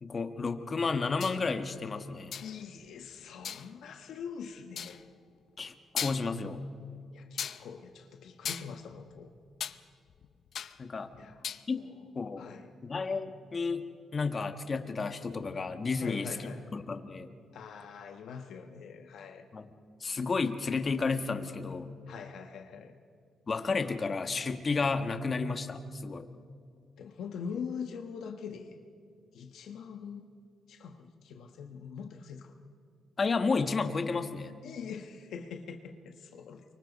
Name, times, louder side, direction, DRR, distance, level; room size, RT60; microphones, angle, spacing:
voice 1, 0.0-2.3 5.6-6.6 10.8-11.1 11.7-11.8 12.1-12.5 12.8-13.8 14.1-17.3 19.5-19.7 20.0-21.9 23.5-26.3 33.2-34.5, left 4 dB, 30° left, 7 dB, 1.3 m, -32 dB
sound 1, 1.2-1.4 2.3-2.6 3.4-3.7 4.8-5.0 5.6-5.7 6.0-6.5 7.4-7.7 8.4-9.8 10.1-10.8 11.1-11.6, left 8 dB, 55° left, 0.6 m, -37 dB
voice 2, 2.4-5.0 7.1-9.3 11.2-11.4 11.7-12.1 12.4-12.7 16.0-16.7 17.5-19.5 22.1-22.9 27.0-28.8 29.3-30.3 30.7-32.6 34.6-36.6, left 6 dB, 75° left, 4 dB, 1.3 m, -43 dB
29.5 x 24.0 x 4.1 m, 2.2 s
cardioid pair, 135°, 0 cm